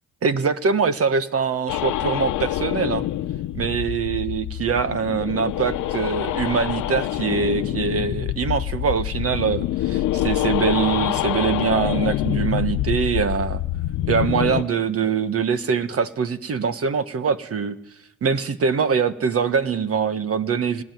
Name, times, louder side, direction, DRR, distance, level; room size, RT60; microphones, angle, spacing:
voice 1, 0.2-3.0 3.5-13.6 14.1-17.8 18.2-20.8, right 6 dB, 50° right, 11 dB, 1.5 m, -23 dB
sound 1, 1.7-14.6, left 13 dB, 80° left, 0.9 m, -26 dB
19.0 x 19.0 x 9.4 m, 0.87 s
cardioid pair, 90°, 30 cm